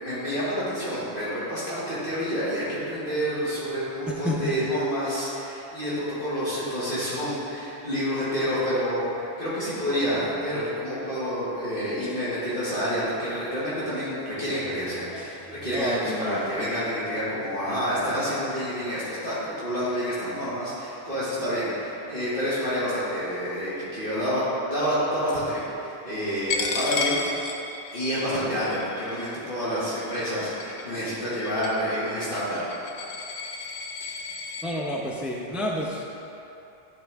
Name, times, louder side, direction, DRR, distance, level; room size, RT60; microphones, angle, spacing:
voice 1, 0.0-27.3 27.9-32.7, equal, 60° left, -12 dB, 2.0 m, -28 dB
voice 2, 4.1-4.5 12.0-12.1 15.1-16.4 30.4-30.5 31.0-31.1 34.6-36.0, left 1 dB, ahead, -2 dB, 0.5 m, -30 dB
Coin (dropping), 26.5-34.6, left 4 dB, 85° left, 0.9 m, -33 dB
10.5 x 4.5 x 3.5 m, 2.9 s
omnidirectional pair, 1.0 m